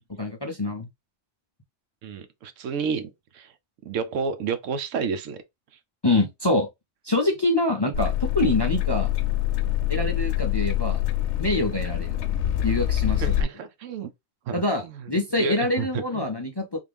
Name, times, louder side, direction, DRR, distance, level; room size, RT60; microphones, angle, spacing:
voice 1, 0.2-0.9 6.0-6.7 7.0-9.1 9.9-11.0 11.4-12.1 12.6-13.5 14.5-16.8, left 2 dB, 30° left, 0.4 m, -25 dB
voice 2, 2.0-3.5 3.8-5.4 13.2-14.1 14.5-15.1 15.3-16.3, right 5 dB, 85° right, 1.0 m, -31 dB
sound 1, 7.9-13.4, left 13 dB, 70° left, 0.9 m, -25 dB
3.6 x 2.4 x 3.3 m
omnidirectional pair, 1.3 m